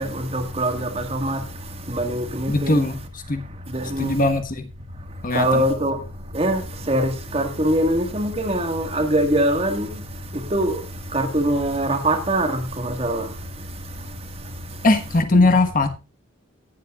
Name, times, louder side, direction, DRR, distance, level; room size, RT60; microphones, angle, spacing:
voice 1, 0.0-1.4 1.9-2.9 3.7-4.2 5.3-6.0 6.3-10.0 10.3-10.8 11.1-13.3, right 1 dB, 30° right, 1.7 m, -23 dB
voice 2, 2.5-3.0 3.3-3.4 4.0-4.7 5.2-5.6 14.8-15.9, left 2 dB, 40° left, 1.3 m, -19 dB
18.0 x 8.3 x 2.4 m
head